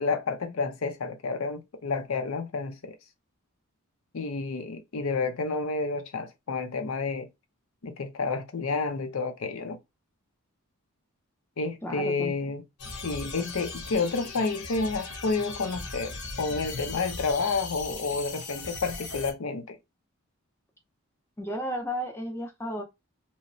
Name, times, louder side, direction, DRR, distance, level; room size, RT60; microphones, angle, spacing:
voice 1, 0.0-3.0 4.1-7.3 7.8-9.8 11.6-12.6 12.9-19.8, left 4 dB, 70° left, 0.5 m, -30 dB
voice 2, 11.8-12.3 21.4-22.8, equal, 10° left, 0.4 m, -33 dB
sound 1, 12.8-19.3, left 3 dB, 85° left, 0.9 m, -38 dB
2.9 x 2.0 x 2.5 m
head